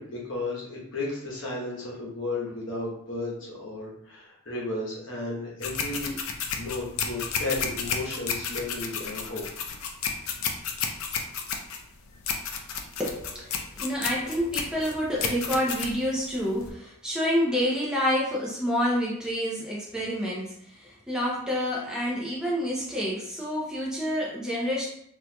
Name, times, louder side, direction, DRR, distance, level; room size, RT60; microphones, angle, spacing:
voice 1, 0.0-6.1 6.6-9.4, left 2 dB, 60° left, -4 dB, 1.0 m, -34 dB
sound 1, 5.6-16.7, left 6 dB, 80° left, 0.5 m, -32 dB
voice 2, 13.0-24.9, equal, 5° right, -5 dB, 0.6 m, -28 dB
4.2 x 2.5 x 2.2 m, 0.72 s
head